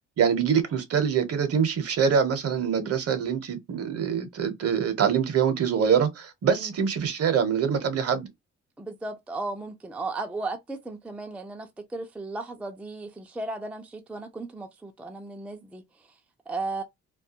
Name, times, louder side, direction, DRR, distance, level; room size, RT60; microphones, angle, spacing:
voice 1, 0.2-8.3, right 7 dB, 50° right, 0.7 m, -24 dB
voice 2, 8.8-15.8 16.5-16.8, right 3 dB, 5° right, 0.4 m, -35 dB
2.2 x 2.2 x 2.7 m
cardioid pair, 90°, 30 cm